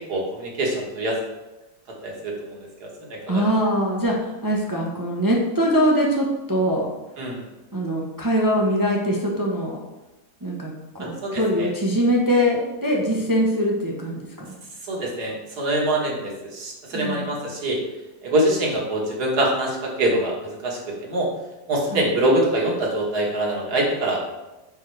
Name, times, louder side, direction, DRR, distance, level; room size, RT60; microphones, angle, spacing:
voice 1, 0.1-1.2 2.0-2.3 2.8-3.4 7.2-7.4 11.0-11.7 14.9-17.8 18.2-21.3 21.7-24.2, right 1 dB, 70° right, -2 dB, 1.9 m, -24 dB
voice 2, 3.3-6.9 7.7-9.8 10.4-14.5 16.9-17.3 21.9-22.1, equal, 30° right, -2 dB, 0.3 m, -22 dB
9.1 x 3.7 x 3.2 m, 1.0 s
omnidirectional pair, 1.8 m